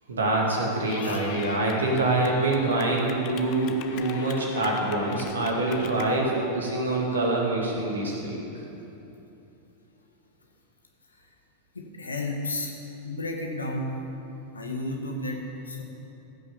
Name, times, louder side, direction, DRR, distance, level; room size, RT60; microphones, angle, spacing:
voice 1, 0.1-8.4, right 2 dB, 70° right, -1 dB, 2.1 m, -25 dB
Clapping / Cheering, 0.9-6.1, left 8 dB, 40° left, 0.8 m, -41 dB
voice 2, 11.7-12.7 13.0-14.0 14.5-15.8, left 2 dB, 80° left, 1 dB, 1.6 m, -32 dB
15.0 x 6.3 x 7.2 m, 3.0 s
figure-of-eight pair, 90°, 0 cm